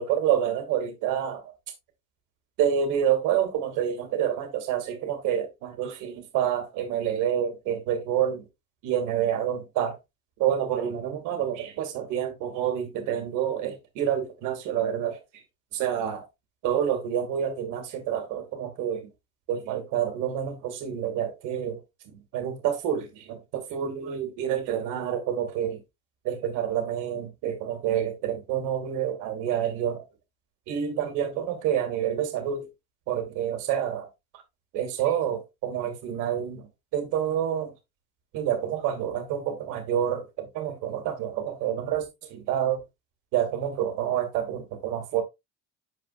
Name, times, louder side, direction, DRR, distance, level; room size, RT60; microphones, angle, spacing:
voice 1, 0.0-1.5 2.6-8.5 8.8-10.0 10.4-15.2 15.7-16.3 16.6-19.1 19.5-25.8 26.2-30.0 30.7-32.7 33.1-34.1 34.7-37.7 38.3-42.8 43.3-45.2, right 9 dB, 75° right, 2.5 m, -28 dB
7.5 x 5.4 x 2.5 m
supercardioid pair, 90°, 31 cm